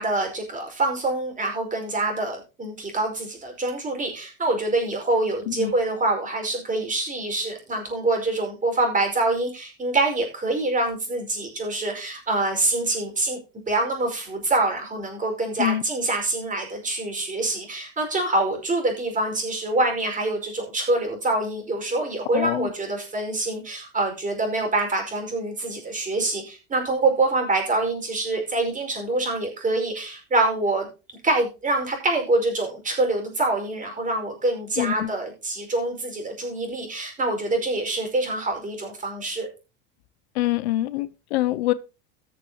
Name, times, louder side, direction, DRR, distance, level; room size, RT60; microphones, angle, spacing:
voice 1, 0.0-13.4 13.7-30.9 31.2-39.5, right 2 dB, 25° right, 5.0 m, -25 dB
voice 2, 22.3-22.7 34.8-35.1 40.4-41.7, left 15 dB, 90° left, 0.8 m, -25 dB
18.0 x 6.8 x 2.9 m
supercardioid pair, 100°, 31 cm